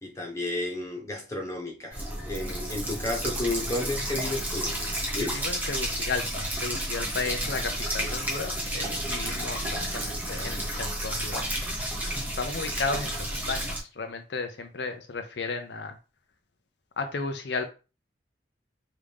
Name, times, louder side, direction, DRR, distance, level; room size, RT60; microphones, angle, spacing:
voice 1, 0.0-4.8 5.1-5.4, left 2 dB, 15° left, 0 dB, 1.3 m, -32 dB
sound 1, 1.9-13.8, right 1 dB, 10° right, 1.0 m, -31 dB
voice 2, 5.2-11.5 12.3-16.0 17.0-17.7, left 4 dB, 75° left, 6 dB, 0.6 m, -34 dB
4.9 x 2.8 x 3.5 m, 0.32 s
head